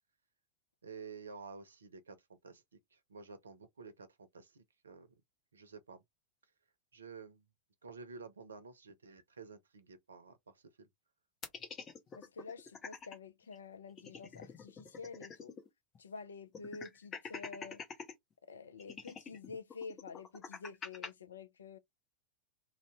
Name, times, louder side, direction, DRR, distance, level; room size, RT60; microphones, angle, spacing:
voice 1, 0.8-5.2 5.5-6.0 6.9-7.5 7.8-10.9, right 5 dB, 70° right, 0.6 m, -51 dB
sound 1, 11.4-13.2 13.5-13.6 13.9-15.7 15.9-16.0 16.5-18.1 18.8-21.1, left 5 dB, 25° left, 0.8 m, -46 dB
voice 2, 12.2-15.6 16.0-17.8 18.5-21.8, left 4 dB, 70° left, 0.4 m, -48 dB
2.7 x 2.0 x 3.3 m
figure-of-eight pair, 90°, 0 cm